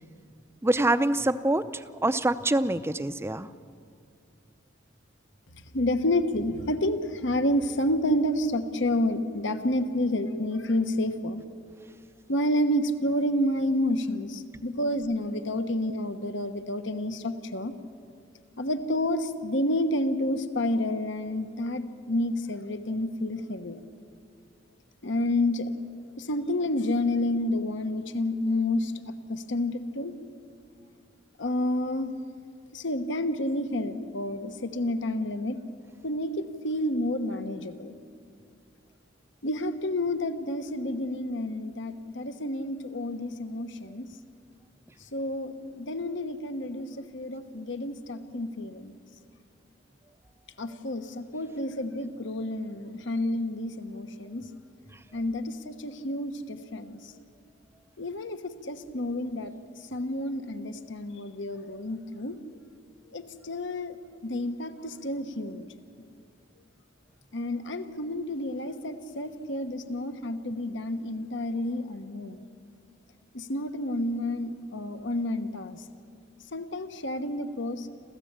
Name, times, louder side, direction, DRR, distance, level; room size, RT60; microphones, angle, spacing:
voice 1, 0.6-3.5 14.5-14.6, right 1 dB, 15° right, 12 dB, 0.6 m, -25 dB
voice 2, 5.7-11.4 12.3-17.7 18.6-23.8 25.0-25.7 26.2-30.1 31.4-32.1 32.7-35.6 36.0-37.9 39.4-44.1 45.1-48.9 50.6-54.6 55.1-57.1 58.0-59.5 59.9-62.6 63.1-64.0 64.2-65.7 67.3-72.5 73.3-75.8 76.5-77.9, left 1 dB, 70° left, 9 dB, 1.2 m, -29 dB
27.5 x 14.5 x 8.8 m, 2.3 s
head